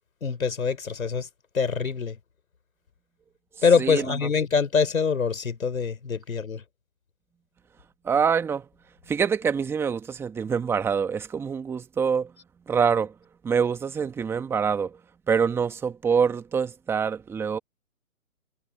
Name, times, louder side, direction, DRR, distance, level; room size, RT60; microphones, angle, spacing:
voice 1, 0.2-1.3 1.5-2.2 3.6-6.6, left 5 dB, 80° left, 4.0 m, -24 dB
voice 2, 3.8-4.2 8.0-8.6 9.1-12.3 12.7-13.1 13.4-15.0 15.3-17.6, right 6 dB, 5° right, 1.4 m, -25 dB
hypercardioid pair, 150°, 41 cm